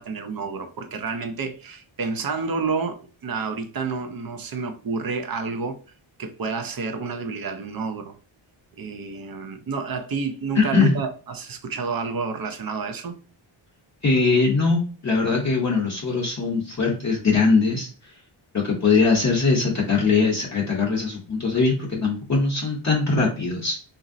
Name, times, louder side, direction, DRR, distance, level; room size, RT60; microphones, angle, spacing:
voice 1, 0.0-5.8 6.2-8.1 8.8-13.2, right 4 dB, 45° right, 0.5 m, -29 dB
voice 2, 10.5-11.0 14.0-17.9 18.5-23.8, left 4 dB, 35° left, 0.7 m, -21 dB
2.9 x 2.6 x 2.5 m
wide cardioid pair, 100°, 49 cm